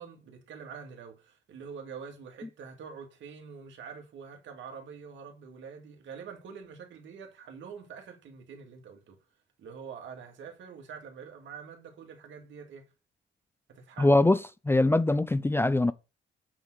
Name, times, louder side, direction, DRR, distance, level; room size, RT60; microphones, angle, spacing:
voice 1, 0.0-9.2 9.6-12.9 13.7-14.2, right 6 dB, 70° right, 2.3 m, -45 dB
voice 2, 14.0-14.4 14.7-15.9, left 2 dB, 10° left, 0.4 m, -22 dB
8.7 x 3.9 x 6.3 m
cardioid pair, 90°, 20 cm